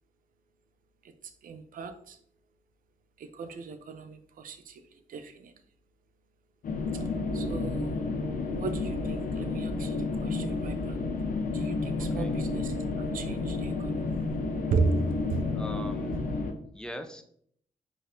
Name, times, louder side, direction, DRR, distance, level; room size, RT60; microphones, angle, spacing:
voice 1, 1.4-2.2 3.2-4.8 5.1-5.5 7.3-8.0 8.5-10.0 10.2-11.0 11.5-13.9 14.7-15.4, right 4 dB, 85° right, 9 dB, 0.5 m, -35 dB
sound 1, 6.6-16.5, left 3 dB, 75° left, 0.7 m, -31 dB
voice 2, 12.0-12.3 15.5-16.3 16.7-17.2, equal, 5° left, 6 dB, 0.6 m, -41 dB
5.0 x 4.1 x 2.6 m, 0.64 s
cardioid pair, 90°, 14 cm